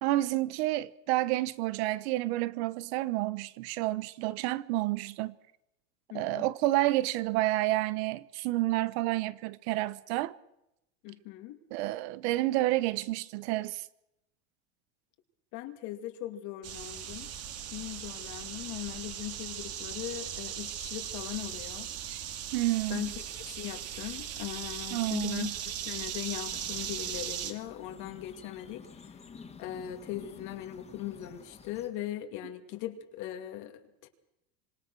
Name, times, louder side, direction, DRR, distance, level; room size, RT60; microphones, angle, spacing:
voice 1, 0.0-5.4 6.1-10.3 11.7-13.9 22.1-22.2 22.5-23.0 24.9-25.5, right 17 dB, 70° right, 1.2 m, -29 dB
voice 2, 6.1-6.5 11.0-11.6 15.5-17.3 17.7-21.9 22.9-29.2 29.6-34.1, left 13 dB, 60° left, 2.5 m, -39 dB
sound 1, 16.6-27.5, right 10 dB, 45° right, 2.5 m, -38 dB
sound 2, 26.5-31.9, left 5 dB, 20° left, 2.5 m, -51 dB
26.5 x 20.0 x 6.2 m
supercardioid pair, 130°, 33 cm